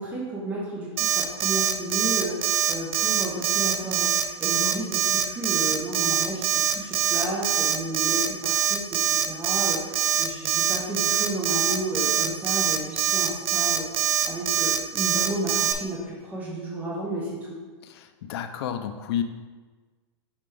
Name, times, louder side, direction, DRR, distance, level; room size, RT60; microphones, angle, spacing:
voice 1, 0.0-8.8 9.3-13.8 14.3-17.5, right 1 dB, 10° right, -5 dB, 0.9 m, -32 dB
Alarm, 1.0-15.7, right 9 dB, 55° right, 0.6 m, -23 dB
voice 2, 18.3-19.2, left 9 dB, 60° left, 8 dB, 0.6 m, -29 dB
5.9 x 5.7 x 3.3 m, 1.4 s
supercardioid pair, 160°, 15 cm